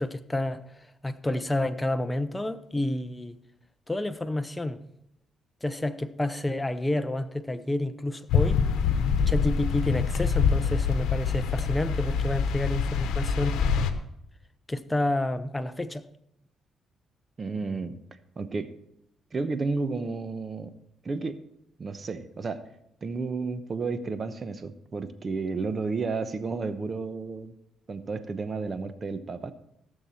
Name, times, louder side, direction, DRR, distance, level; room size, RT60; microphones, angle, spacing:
voice 1, 0.0-3.4 3.9-4.8 5.6-8.6 9.3-13.7 14.7-16.1, left 1 dB, 10° left, 0.7 m, -29 dB
sound 1, 8.3-13.9, left 6 dB, 85° left, 1.0 m, -25 dB
voice 2, 17.4-18.0 18.4-18.7 19.3-20.7 21.0-21.4 21.8-22.6 23.0-27.5 27.9-29.5, right 4 dB, 35° right, 1.0 m, -32 dB
16.5 x 6.9 x 4.3 m
cardioid pair, 90°, 0 cm